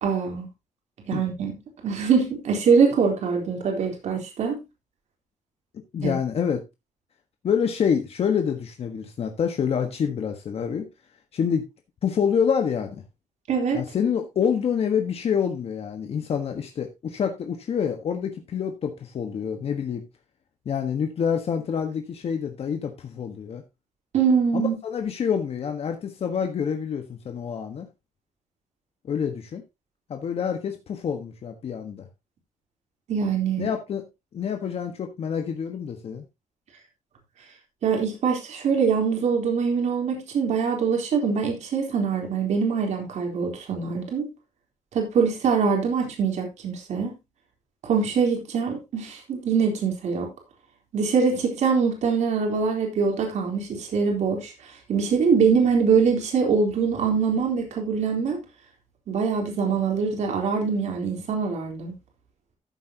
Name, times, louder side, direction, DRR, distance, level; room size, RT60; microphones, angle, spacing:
voice 1, 0.0-0.5 1.1-1.5 1.8-4.6 6.0-6.1 13.5-13.8 24.1-24.8 33.1-33.7 37.8-44.3 44.9-47.1 47.8-50.3 50.9-54.5 54.9-58.4 59.1-61.9, right 5 dB, 65° right, 3.8 m, -23 dB
voice 2, 5.9-6.6 7.4-10.8 11.3-11.7 12.0-13.0 13.7-20.0 20.6-23.6 24.5-27.9 29.0-29.6 30.1-32.1 33.6-34.0 34.3-36.2, left 7 dB, 50° left, 1.4 m, -27 dB
14.0 x 7.9 x 2.9 m
cardioid pair, 150°, 13 cm